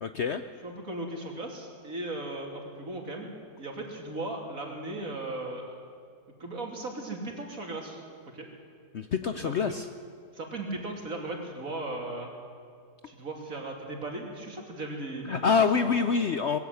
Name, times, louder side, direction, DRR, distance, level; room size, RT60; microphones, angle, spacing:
voice 1, 0.0-0.4 8.9-9.9 15.2-16.6, left 5 dB, 55° left, 9 dB, 0.8 m, -26 dB
voice 2, 0.6-3.3 3.6-5.9 6.4-8.0 8.3-8.5 9.4-9.7 10.3-12.3 13.1-15.4 15.7-15.9, right 2 dB, 55° right, 1 dB, 3.5 m, -37 dB
21.0 x 15.0 x 9.3 m, 2.3 s
omnidirectional pair, 1.7 m